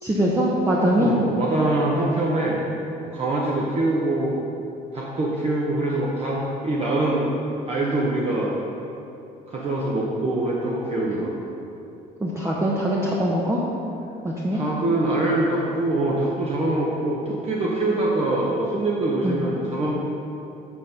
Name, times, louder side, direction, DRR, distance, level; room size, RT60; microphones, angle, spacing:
voice 1, 0.0-1.2 11.1-11.2 12.2-13.6 14.2-14.6 19.2-19.4, equal, 15° right, -4 dB, 0.9 m, -22 dB
voice 2, 1.0-2.6 3.0-4.4 4.9-7.3 7.7-8.5 9.5-11.3 14.5-19.9, right 2 dB, 40° right, -5 dB, 1.0 m, -24 dB
8.3 x 4.1 x 5.2 m, 2.8 s
cardioid pair, 110°, 17 cm